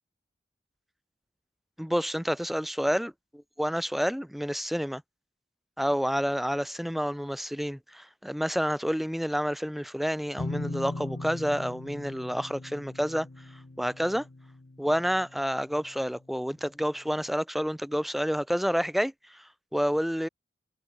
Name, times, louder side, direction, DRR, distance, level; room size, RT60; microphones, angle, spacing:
voice 1, 1.8-5.0 5.8-13.3 13.8-14.3 14.8-20.3, equal, ahead, 0.4 m, -29 dB
sound 1, 10.4-16.0, left 2 dB, 50° left, 0.8 m, -39 dB
head